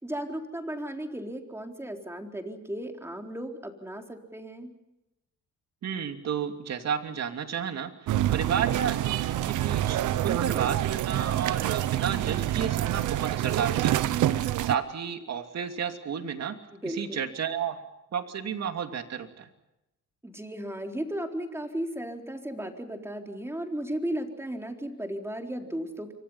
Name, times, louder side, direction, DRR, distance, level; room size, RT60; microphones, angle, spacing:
voice 1, 0.0-4.7 16.7-17.3 20.2-26.1, right 1 dB, 10° right, 3 dB, 4.0 m, -35 dB
voice 2, 5.8-16.6 16.8-17.8 18.1-19.5, right 7 dB, 60° right, 6 dB, 2.9 m, -32 dB
sound 1, 8.1-14.7, right 13 dB, 85° right, 1.2 m, -27 dB
28.5 x 24.5 x 5.7 m, 0.89 s
cardioid pair, 90°, 30 cm